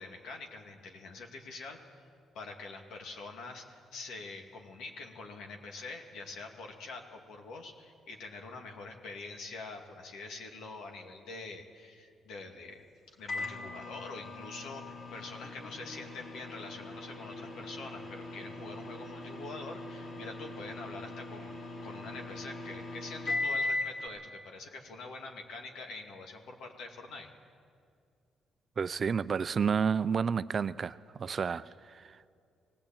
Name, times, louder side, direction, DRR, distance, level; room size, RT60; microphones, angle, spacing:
voice 1, 0.0-2.1 2.3-21.6 21.8-27.3, left 3 dB, 80° left, 3 dB, 2.4 m, -45 dB
Microwave oven, 13.3-24.0, left 2 dB, 50° left, 3.6 m, -39 dB
voice 2, 28.8-32.3, right 6 dB, 45° right, 15 dB, 0.5 m, -31 dB
18.5 x 17.0 x 8.9 m, 2.4 s
cardioid pair, 90°, 0 cm